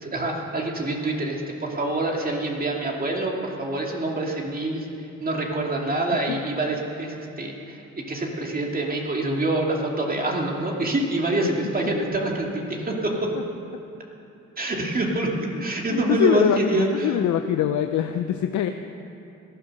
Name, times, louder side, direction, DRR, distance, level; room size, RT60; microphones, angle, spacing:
voice 1, 0.0-4.9 5.2-7.8 8.1-13.3 14.6-15.3 15.6-17.2, right 2 dB, 30° right, 0 dB, 2.5 m, -26 dB
voice 2, 15.9-18.7, left 10 dB, 70° left, 7 dB, 0.7 m, -23 dB
17.5 x 11.5 x 6.6 m, 2.8 s
cardioid pair, 90°, 30 cm